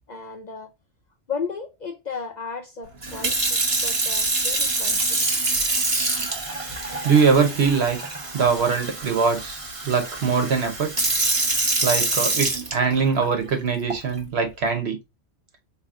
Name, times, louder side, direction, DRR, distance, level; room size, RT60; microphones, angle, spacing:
voice 1, 0.1-0.7 1.3-5.2, left 5 dB, 50° left, 0.6 m, -34 dB
Sink (filling or washing) / Fill (with liquid), 3.0-13.2 13.9-14.2, right 2 dB, 30° right, 0.9 m, -25 dB
voice 2, 6.7-8.0 8.3-9.6 9.9-10.9 11.8-15.0, right 5 dB, 65° right, 1.1 m, -22 dB
4.3 x 2.9 x 2.4 m
omnidirectional pair, 1.2 m